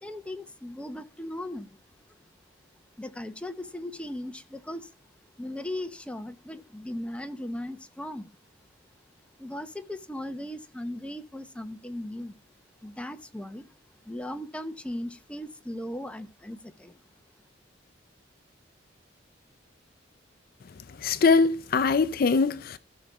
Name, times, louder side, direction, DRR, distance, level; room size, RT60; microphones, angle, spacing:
voice 1, 0.0-1.8 3.0-4.9 5.4-8.4 9.4-12.4 12.8-13.7 14.1-17.0, left 1 dB, 5° left, 0.8 m, -37 dB
voice 2, 21.0-22.8, left 4 dB, 50° left, 0.4 m, -22 dB
16.0 x 5.4 x 4.6 m
head